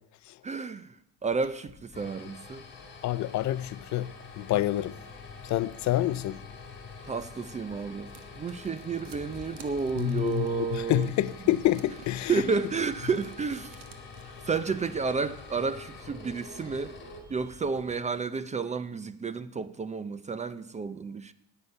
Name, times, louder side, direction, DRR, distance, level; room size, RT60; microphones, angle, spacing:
voice 1, 0.4-2.7 7.0-8.1 8.4-11.1 11.4-11.5 12.3-13.8 14.2-17.0 17.3-21.3, right 5 dB, 20° right, 0.5 m, -31 dB
sound 1, 1.7-17.9, left 4 dB, 30° left, 3.5 m, -47 dB
voice 2, 3.0-5.0 5.4-6.4 10.0-12.3, left 14 dB, 50° left, 0.6 m, -28 dB
sound 2, 4.7-17.9, left 3 dB, 10° left, 5.9 m, -53 dB
sound 3, 7.6-14.5, right 8 dB, 60° right, 1.6 m, -53 dB
19.5 x 8.1 x 5.4 m
cardioid pair, 125°, 38 cm